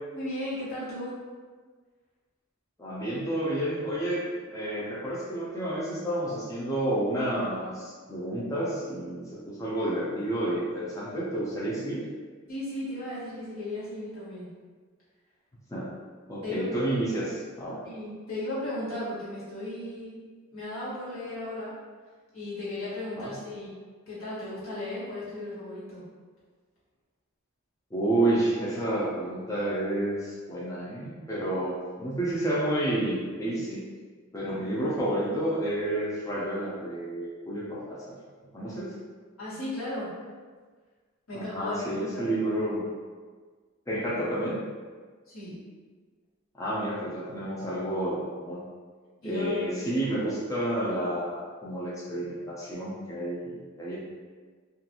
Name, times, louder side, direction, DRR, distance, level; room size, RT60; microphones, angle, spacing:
voice 1, 0.1-1.2 12.5-14.5 16.4-16.7 17.8-20.2 20.5-21.7 22.3-23.7 24.1-26.1 39.4-40.1 41.3-42.3 45.3-45.6 49.2-49.6, left 1 dB, 80° left, -11 dB, 1.4 m, -35 dB
voice 2, 2.8-4.2 4.5-12.0 15.7-15.9 16.3-17.8 23.2-23.3 27.9-33.8 34.3-38.2 38.5-38.9 41.3-42.8 43.9-44.6 46.5-48.6 49.2-54.0, right 1 dB, 15° left, -7 dB, 0.4 m, -30 dB
2.4 x 2.3 x 2.8 m, 1.5 s
head